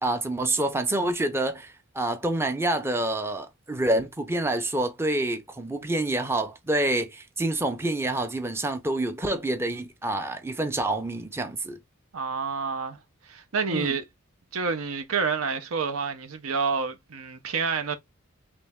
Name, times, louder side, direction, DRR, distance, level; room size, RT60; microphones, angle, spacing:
voice 1, 0.0-11.8 13.7-13.9, right 1 dB, 10° right, 0.5 m, -27 dB
voice 2, 12.1-13.0 13.2-14.0 14.5-18.0, right 5 dB, 75° right, 0.7 m, -28 dB
3.3 x 3.1 x 3.4 m
head